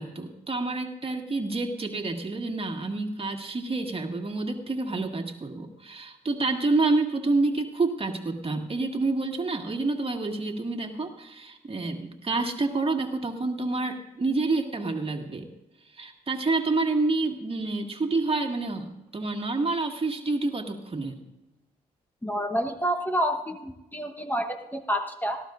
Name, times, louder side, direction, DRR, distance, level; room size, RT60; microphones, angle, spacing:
voice 1, 0.0-15.5 15.9-21.2, right 3 dB, 35° right, 4 dB, 1.9 m, -28 dB
voice 2, 22.2-25.4, equal, 10° left, 6 dB, 1.1 m, -28 dB
18.0 x 13.5 x 2.5 m, 0.99 s
supercardioid pair, 55°, 17 cm